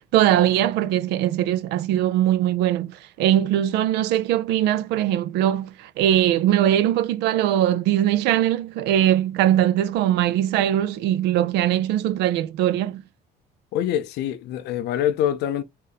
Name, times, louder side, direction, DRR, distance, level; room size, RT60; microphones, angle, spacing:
voice 1, 0.1-13.0, right 12 dB, 85° right, 0.5 m, -21 dB
voice 2, 13.7-15.6, left 10 dB, 80° left, 0.6 m, -25 dB
3.8 x 2.7 x 4.0 m
cardioid pair, 110°, 17 cm